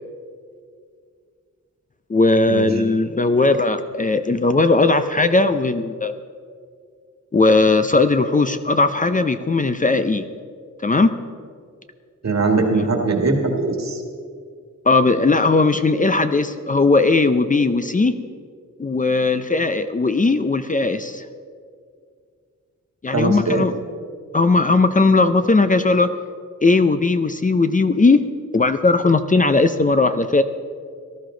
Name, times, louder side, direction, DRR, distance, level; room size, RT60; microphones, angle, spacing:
voice 1, 2.1-6.2 7.3-10.3 10.8-11.1 14.8-18.2 18.8-21.2 23.0-23.7 24.3-26.1 26.6-28.2 28.5-30.4, left 3 dB, 25° left, 9 dB, 0.5 m, -18 dB
voice 2, 12.2-14.0 23.1-23.7, right 3 dB, 60° right, 3 dB, 1.9 m, -20 dB
18.5 x 12.5 x 3.9 m, 2.1 s
wide cardioid pair, 105°, 31 cm